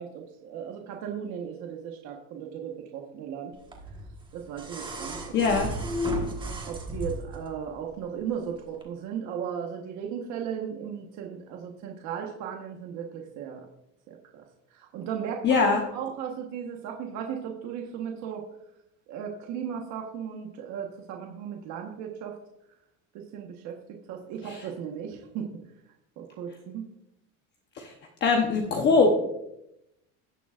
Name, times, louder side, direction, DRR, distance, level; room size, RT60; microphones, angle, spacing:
voice 1, 0.0-3.5 4.3-5.6 6.6-13.7 14.1-14.4 14.7-15.7 15.9-18.4 19.1-22.4 23.1-25.5 26.2-26.9, right 8 dB, 55° right, 1 dB, 1.3 m, -36 dB
sound 1, 3.7-7.5 8.7-8.8, equal, 15° right, 1.3 m, -33 dB
voice 2, 5.3-5.7 15.4-15.8 24.5-24.6 27.8-27.9 28.2-29.2, left 4 dB, 30° left, 2 dB, 0.9 m, -22 dB
18.0 x 7.0 x 2.5 m, 0.83 s
cardioid pair, 175°, 33 cm